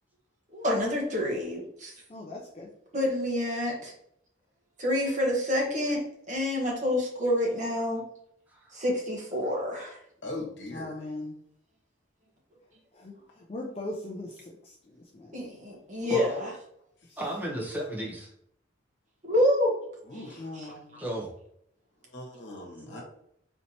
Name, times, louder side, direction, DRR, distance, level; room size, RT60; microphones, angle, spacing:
voice 1, 0.5-1.9 2.9-3.9 4.8-8.0 8.7-10.0 15.3-16.5 19.2-19.7 20.1-20.2 20.5-20.7, left 1 dB, 40° right, -2 dB, 1.1 m, -28 dB
voice 2, 2.1-2.7 10.7-11.4 12.9-15.6 17.1-17.2 20.4-21.1, left 2 dB, 30° left, -1 dB, 0.4 m, -40 dB
voice 3, 10.2-11.0 20.1-20.5 22.0-23.0, left 2 dB, 65° left, -1 dB, 1.2 m, -40 dB
voice 4, 17.2-18.3 21.0-21.3 22.9-23.0, right 1 dB, 10° right, -3 dB, 0.8 m, -34 dB
4.3 x 2.9 x 2.8 m, 0.71 s
head